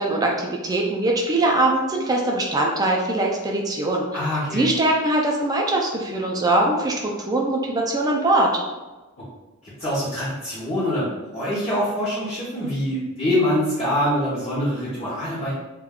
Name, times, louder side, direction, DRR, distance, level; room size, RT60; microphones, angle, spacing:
voice 1, 0.0-4.1 4.5-6.9 7.3-8.5, right 2 dB, 15° right, -1 dB, 0.3 m, -21 dB
voice 2, 4.1-4.7 9.2-9.3 9.6-11.1 11.3-15.5, equal, 25° left, -9 dB, 0.7 m, -24 dB
2.3 x 2.2 x 3.4 m, 1.1 s
head